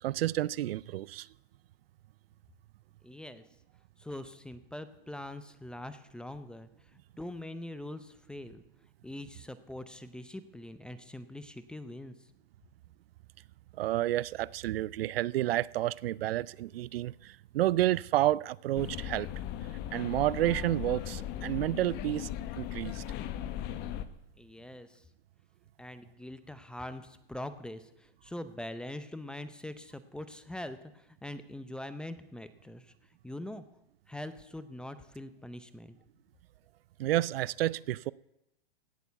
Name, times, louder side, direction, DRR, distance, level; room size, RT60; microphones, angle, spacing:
voice 1, 0.0-1.3 13.8-19.3 19.9-22.3 22.6-23.0 37.0-38.1, right 15 dB, 70° right, 0.5 m, -30 dB
voice 2, 3.0-3.4 4.0-8.6 9.0-12.3 24.4-25.1 25.8-32.9 33.2-33.6 34.1-36.0, left 1 dB, 5° left, 0.5 m, -43 dB
sound 1, 18.8-24.1, left 11 dB, 35° left, 1.0 m, -38 dB
17.0 x 7.0 x 8.0 m
hypercardioid pair, 135°, 30 cm